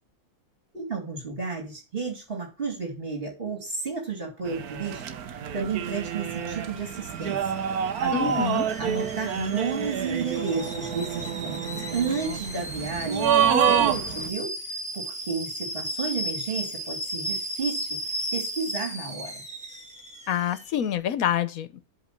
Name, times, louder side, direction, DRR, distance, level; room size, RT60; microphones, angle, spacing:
voice 1, 0.7-5.0 5.3-7.6 8.0-8.5 8.8-14.5 14.9-17.9 18.3-19.4, right 5 dB, 35° right, 2.8 m, -32 dB
sound 1, 4.5-14.3, right 8 dB, 80° right, 1.3 m, -27 dB
Alarm / Boiling, 6.1-20.9, equal, 5° right, 1.6 m, -36 dB
voice 2, 8.1-8.7 20.3-21.8, left 10 dB, 70° left, 1.2 m, -26 dB
8.2 x 3.7 x 6.7 m
omnidirectional pair, 1.6 m